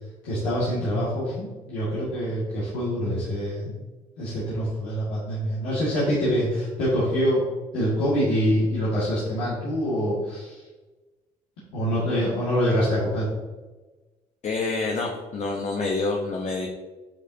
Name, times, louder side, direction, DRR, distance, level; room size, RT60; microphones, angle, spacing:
voice 1, 0.2-3.7 4.2-7.4 7.7-10.7 11.7-13.3, equal, 85° left, -9 dB, 2.1 m, -25 dB
voice 2, 14.4-16.7, left 3 dB, 45° left, -1 dB, 1.0 m, -27 dB
8.8 x 5.1 x 2.8 m, 1.2 s
supercardioid pair, 65°, 16 cm